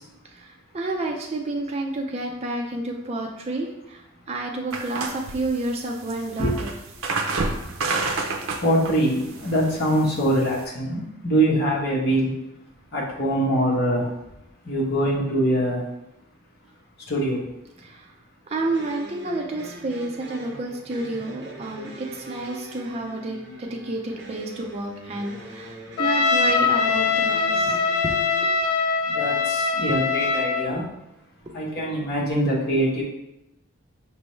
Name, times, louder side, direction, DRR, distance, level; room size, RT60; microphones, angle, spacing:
voice 1, 0.2-6.7 7.5-7.6 8.2-8.5 17.8-18.1 18.5-28.1 30.7-30.8, right 2 dB, 30° right, 1 dB, 0.4 m, -30 dB
sound 1, 4.7-10.7, right 3 dB, 75° right, 0.6 m, -30 dB
voice 2, 8.6-12.3 12.9-14.1 14.7-15.8 17.1-17.4 29.1-30.8 31.5-33.0, right 1 dB, 50° left, -4 dB, 1.1 m, -23 dB
sound 2, 18.6-28.5, right 2 dB, 55° right, 0.9 m, -42 dB
Trumpet, 26.0-30.7, left 4 dB, 85° left, 0.4 m, -22 dB
5.1 x 3.3 x 3.1 m, 0.89 s
head